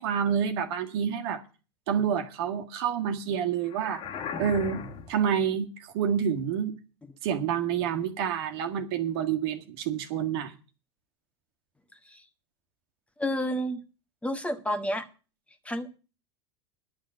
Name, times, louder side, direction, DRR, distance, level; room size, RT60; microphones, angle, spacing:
voice 1, 0.0-1.4 1.9-4.0 4.4-4.8 5.1-6.7 7.2-10.5, right 8 dB, 60° right, 5 dB, 1.7 m, -28 dB
sound 1, 3.7-5.3, left 6 dB, 40° left, 1.8 m, -37 dB
voice 2, 13.2-13.8 14.2-15.1 15.6-16.0, equal, 10° left, 9 dB, 1.3 m, -30 dB
10.5 x 6.3 x 9.0 m, 0.34 s
hypercardioid pair, 95°, 14 cm